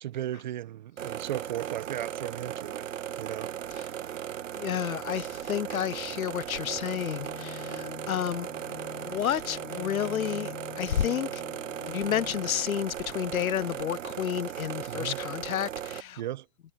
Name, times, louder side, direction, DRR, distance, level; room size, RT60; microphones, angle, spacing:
voice 1, 0.0-2.9 3.2-3.5 14.9-15.2 16.2-16.5, right 12 dB, 35° right, 1.1 m, -36 dB
sound 1, 1.0-16.0, right 10 dB, 60° right, 1.0 m, -37 dB
voice 2, 4.6-8.5 9.0-11.4 11.9-16.2, left 10 dB, 75° left, 0.8 m, -31 dB
sound 2, 6.6-12.6, left 21 dB, 20° left, 3.1 m, -45 dB
hypercardioid pair, 155°, 42 cm